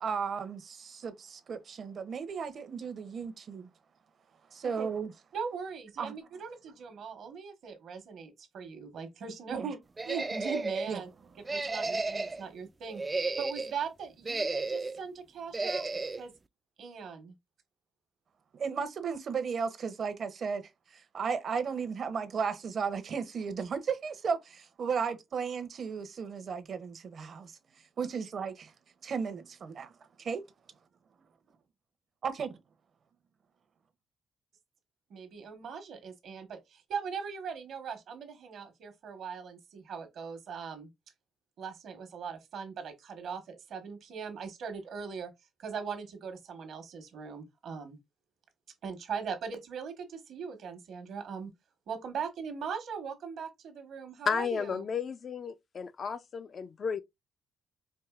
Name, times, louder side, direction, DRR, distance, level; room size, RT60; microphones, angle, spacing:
voice 1, 0.0-3.7 4.5-5.1 6.0-6.2 9.5-9.7 10.9-11.0 18.5-20.6 21.1-27.5 28.0-28.7 29.0-29.9 30.2-30.4 32.2-32.5, right 6 dB, 55° right, 0.8 m, -34 dB
voice 2, 5.3-9.8 10.0-11.1 11.5-16.3 16.8-17.3 35.1-40.9 41.6-45.3 45.6-48.0 48.8-51.5 51.9-54.8, right 6 dB, 70° right, 1.2 m, -40 dB
sound 1, 10.0-10.9 11.4-12.4 12.9-13.8 14.2-15.0 15.5-16.2, right 3 dB, 25° right, 0.3 m, -33 dB
voice 3, 54.3-57.0, left 6 dB, 50° left, 0.4 m, -33 dB
4.7 x 2.6 x 2.4 m
cardioid pair, 90°, 0 cm